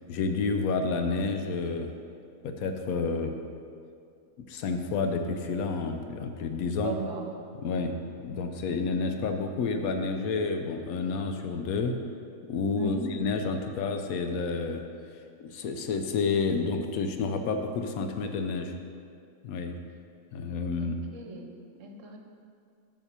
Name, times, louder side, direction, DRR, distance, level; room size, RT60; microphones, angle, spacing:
voice 1, 0.1-1.9 2.4-3.3 4.5-7.0 7.5-7.9 8.2-11.9 12.5-14.8 15.4-18.7 19.4-19.7 20.3-21.0, left 4 dB, 85° left, 5 dB, 1.1 m, -30 dB
voice 2, 6.8-7.4 12.8-13.1 20.8-21.5 21.8-22.2, right 3 dB, 65° right, 3 dB, 1.2 m, -37 dB
7.1 x 5.8 x 6.8 m, 2.3 s
omnidirectional pair, 1.5 m